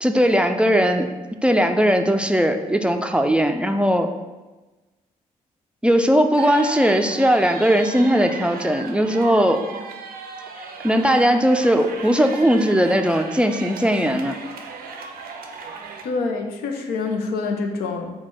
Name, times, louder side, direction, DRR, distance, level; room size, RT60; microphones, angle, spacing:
voice 1, 0.0-1.1 1.4-4.1 5.8-9.6 10.6-14.4, equal, 5° right, 6 dB, 0.3 m, -19 dB
sound 1, 6.4-16.0, right 4 dB, 80° right, 0.5 m, -36 dB
voice 2, 16.0-18.1, left 4 dB, 90° left, 4 dB, 0.5 m, -26 dB
4.3 x 2.3 x 4.3 m, 1.2 s
supercardioid pair, 55°, 15 cm